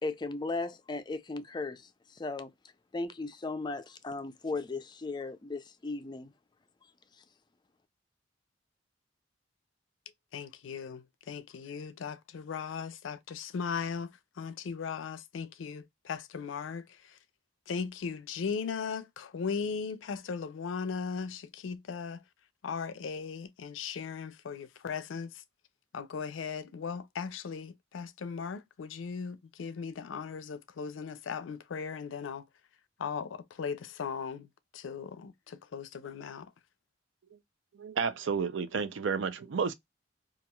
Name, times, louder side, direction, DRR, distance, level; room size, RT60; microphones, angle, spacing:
voice 1, 0.0-2.5 2.9-6.3, left 3 dB, 25° left, 0.3 m, -36 dB
voice 2, 10.3-17.2 17.7-22.2 22.6-25.4 25.9-32.5 33.0-36.5, left 6 dB, 90° left, 0.4 m, -38 dB
voice 3, 37.8-39.7, right 5 dB, 80° right, 0.4 m, -31 dB
3.0 x 2.4 x 2.2 m
head